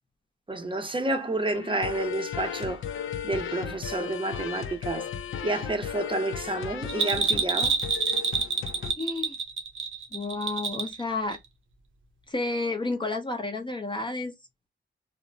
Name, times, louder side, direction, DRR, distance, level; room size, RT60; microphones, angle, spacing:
voice 1, 0.5-2.8 3.2-5.1 5.4-7.8, right 2 dB, 25° right, 0.6 m, -30 dB
sound 1, 1.5-8.9, left 8 dB, 85° left, 0.4 m, -35 dB
Bell, 6.9-11.0 11.3-11.4, right 5 dB, 85° right, 0.7 m, -27 dB
voice 2, 9.0-9.4 10.1-11.4 12.3-14.3, left 3 dB, 25° left, 0.5 m, -31 dB
3.0 x 2.0 x 2.5 m
wide cardioid pair, 100°, 20 cm